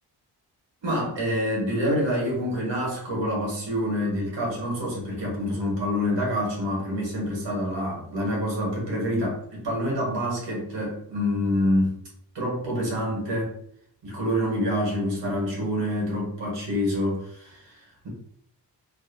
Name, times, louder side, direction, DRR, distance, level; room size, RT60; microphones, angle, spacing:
voice 1, 0.8-12.0 12.3-13.5 14.0-18.1, equal, 80° right, -2 dB, 1.2 m, -27 dB
2.6 x 2.3 x 2.5 m, 0.67 s
cardioid pair, 55°, 43 cm